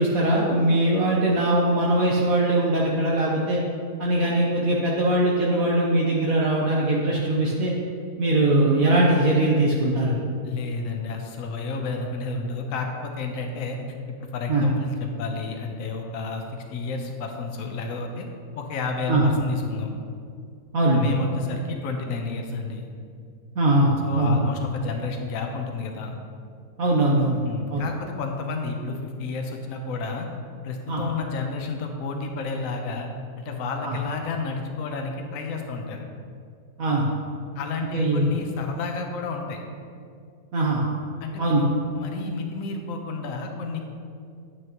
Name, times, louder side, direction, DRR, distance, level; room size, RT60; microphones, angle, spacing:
voice 1, 0.0-3.6 4.0-7.7 8.2-10.1 14.5-14.6 19.1-19.2 20.7-21.1 23.5-24.3 26.8-27.4 27.7-27.8 30.9-31.0 33.8-34.0 36.8-37.1 37.9-38.3 40.5-40.8 41.4-41.6, right 1 dB, 60° right, -4 dB, 1.3 m, -21 dB
voice 2, 10.4-13.8 14.2-18.3 18.5-19.9 20.9-22.9 24.0-26.2 27.4-30.3 30.6-33.1 33.4-36.0 37.5-39.6 41.2-43.8, left 4 dB, 60° left, 2 dB, 1.2 m, -31 dB
9.5 x 9.4 x 3.0 m, 2.3 s
omnidirectional pair, 1.8 m